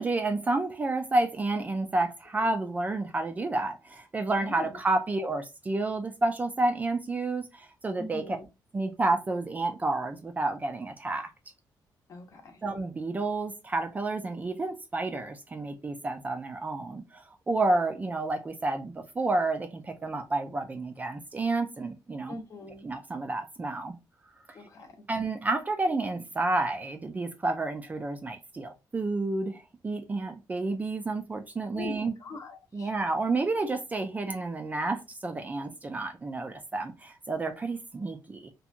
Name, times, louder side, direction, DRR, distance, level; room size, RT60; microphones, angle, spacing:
voice 1, 0.0-8.4 8.7-11.3 12.6-22.3 22.8-24.0 25.1-32.1 32.7-38.5, right 2 dB, 20° right, 0.3 m, -30 dB
voice 2, 4.4-4.8 7.9-8.5 12.1-12.6 22.3-22.9 24.5-25.0 31.7-32.9, left 2 dB, 45° left, 0.7 m, -42 dB
2.7 x 2.2 x 2.4 m
wide cardioid pair, 160°, 7 cm